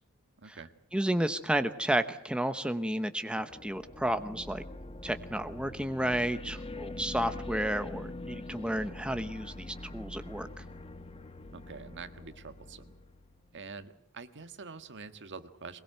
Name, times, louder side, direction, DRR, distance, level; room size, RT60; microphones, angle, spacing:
voice 1, 0.4-0.7 11.5-12.9 13.5-15.8, right 4 dB, 55° right, 10 dB, 1.6 m, -46 dB
voice 2, 0.9-4.6 5.0-10.5, right 1 dB, 5° right, 9 dB, 0.9 m, -32 dB
sound 1, 3.4-13.6, left 2 dB, 25° left, 1.2 m, -44 dB
22.5 x 21.5 x 7.9 m, 0.71 s
head